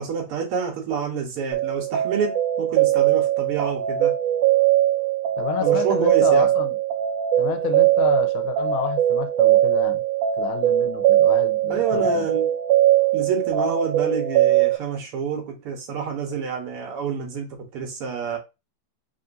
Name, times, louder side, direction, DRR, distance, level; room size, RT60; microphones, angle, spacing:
voice 1, 0.0-4.1 5.6-6.5 11.7-12.4 13.1-18.4, right 6 dB, 60° right, 1.6 m, -28 dB
sound 1, 1.5-14.8, right 12 dB, 80° right, 2.1 m, -20 dB
voice 2, 5.4-6.8 7.4-10.0 10.4-12.3, left 13 dB, 80° left, 1.9 m, -30 dB
4.2 x 3.7 x 2.6 m
omnidirectional pair, 3.5 m